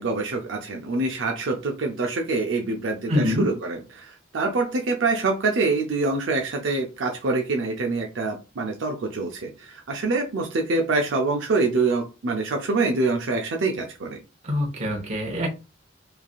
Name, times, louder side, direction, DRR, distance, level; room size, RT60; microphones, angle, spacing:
voice 1, 0.0-14.2, right 3 dB, 75° right, 0.5 m, -25 dB
voice 2, 3.1-3.5 14.4-15.5, left 1 dB, 35° right, 1.0 m, -24 dB
3.2 x 2.5 x 2.3 m
head